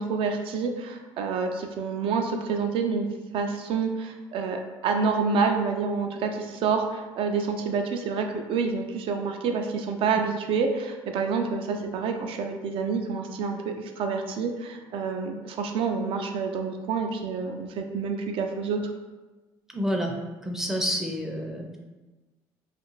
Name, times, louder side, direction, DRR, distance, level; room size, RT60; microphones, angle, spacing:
voice 1, 0.0-3.1 3.3-18.8, right 5 dB, 65° right, 4 dB, 0.4 m, -28 dB
voice 2, 19.7-20.1 20.4-21.8, equal, 5° right, 0 dB, 0.4 m, -28 dB
2.4 x 2.4 x 3.0 m, 1.2 s
supercardioid pair, 85°, 10 cm